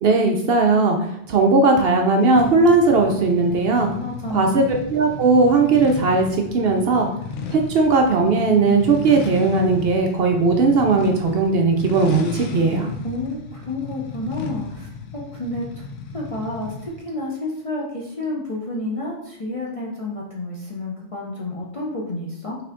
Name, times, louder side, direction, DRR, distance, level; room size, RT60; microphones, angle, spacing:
voice 1, 0.0-3.9 4.3-7.1 7.5-12.9, right 3 dB, 65° right, 3 dB, 0.7 m, -18 dB
sound 1, 2.4-17.0, left 5 dB, 70° left, 0.9 m, -34 dB
voice 2, 4.0-4.6 13.0-15.9 16.1-22.6, left 2 dB, 40° left, -3 dB, 0.5 m, -30 dB
5.7 x 3.4 x 2.5 m, 0.75 s
omnidirectional pair, 1.3 m